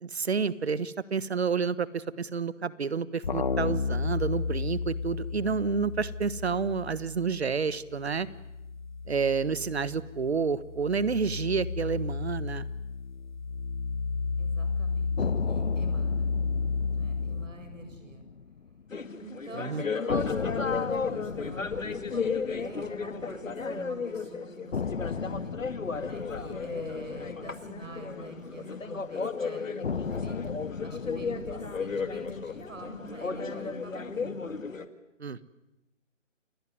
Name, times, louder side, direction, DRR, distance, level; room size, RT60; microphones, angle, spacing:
voice 1, 0.0-8.3 9.1-12.7 19.5-19.8 35.2-35.5, right 5 dB, 55° right, 17 dB, 1.3 m, -29 dB
sound 1, 3.2-7.6 7.9-17.5, left 4 dB, 35° left, 1.2 m, -32 dB
voice 2, 14.4-16.3 16.9-18.2 19.1-25.5 26.0-30.5 30.8-34.5, right 3 dB, 80° right, 6 dB, 7.7 m, -47 dB
sound 2, 15.2-19.3 19.5-19.6 20.1-24.2 24.7-29.1 29.8-34.2, left 5 dB, 60° left, 1.2 m, -38 dB
sound 3, 18.9-34.8, left 5 dB, 85° left, 2.3 m, -34 dB
29.0 x 18.5 x 9.5 m, 0.94 s
hypercardioid pair, 170°, 38 cm